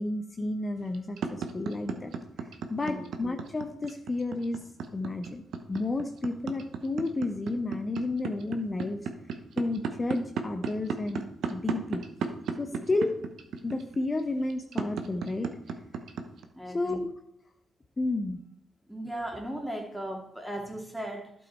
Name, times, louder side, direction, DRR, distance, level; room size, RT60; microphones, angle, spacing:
voice 1, 0.0-2.1 2.7-5.4 5.7-9.1 9.6-12.0 12.6-13.1 13.6-15.5 16.7-17.1 18.0-18.4, left 2 dB, 30° left, 5 dB, 0.8 m, -31 dB
sound 1, 0.8-16.4, right 6 dB, 65° right, 0.9 m, -33 dB
voice 2, 16.5-17.0 18.8-21.3, right 1 dB, 5° right, 2 dB, 2.5 m, -37 dB
11.5 x 5.6 x 4.4 m, 0.79 s
hypercardioid pair, 45°, 0 cm